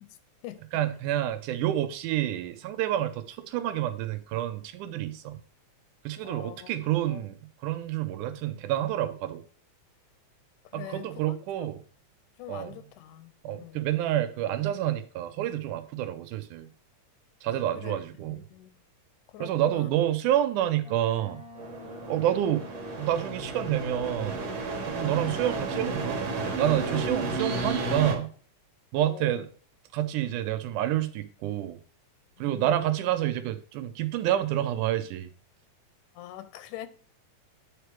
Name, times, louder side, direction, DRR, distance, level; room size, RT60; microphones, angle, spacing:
voice 1, 0.7-5.4 6.1-9.4 10.7-11.8 12.5-12.7 13.4-16.7 17.4-18.4 19.4-21.4 22.1-22.7 23.0-24.4 24.9-28.3 28.9-29.5 29.9-31.8 32.4-35.3, right 12 dB, 85° right, 2.2 m, -28 dB
voice 2, 6.2-6.7 7.0-7.2 10.7-11.7 12.4-13.9 17.8-18.0 18.3-18.8 19.3-19.9 29.1-29.4 32.4-32.9 36.2-36.9, left 13 dB, 80° left, 2.0 m, -44 dB
Boat Water vehicle, 20.8-23.5, left 3 dB, 5° right, 0.6 m, -48 dB
sound 1, 21.6-28.1, right 3 dB, 60° right, 2.4 m, -32 dB
8.9 x 3.3 x 4.5 m
omnidirectional pair, 3.5 m